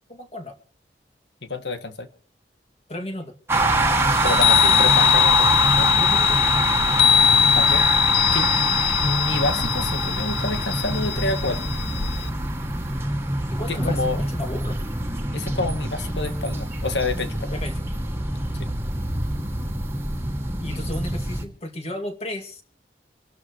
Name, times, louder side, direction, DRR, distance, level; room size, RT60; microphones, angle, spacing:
voice 1, 0.1-0.5 2.9-3.3 6.0-6.7 8.4-8.5 13.5-14.8 17.5-17.8 20.6-22.6, left 1 dB, 35° left, 4 dB, 2.4 m, -34 dB
voice 2, 1.4-2.1 4.2-5.9 7.5-8.7 9.0-11.6 13.7-14.2 15.3-17.6 18.6-18.7, left 2 dB, 85° left, 8 dB, 1.8 m, -28 dB
sound 1, 3.5-21.5, right 2 dB, 15° right, 1.8 m, -25 dB
Chime, 4.2-12.3, left 10 dB, 65° left, 0.7 m, -21 dB
26.5 x 12.0 x 3.2 m, 0.40 s
head